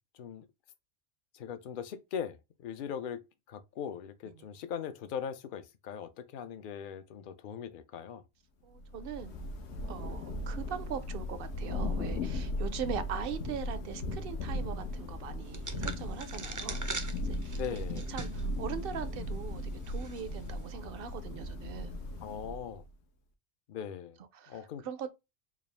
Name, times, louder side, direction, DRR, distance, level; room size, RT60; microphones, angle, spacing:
voice 1, 1.3-8.2 17.5-18.1 22.2-22.8 23.7-24.2 24.5-24.8, left 8 dB, 55° left, 0.7 m, -40 dB
voice 2, 8.6-9.4 9.9-16.8 17.2-17.8 18.1-21.9 24.3-25.2, right 7 dB, 60° right, 0.7 m, -41 dB
Thunder / Rain, 8.8-22.9, left 1 dB, 70° left, 1.0 m, -37 dB
sound 1, 15.5-18.5 18.9-19.0 19.8-20.2, right 3 dB, 30° right, 0.3 m, -41 dB
4.9 x 2.4 x 3.3 m
omnidirectional pair, 1.2 m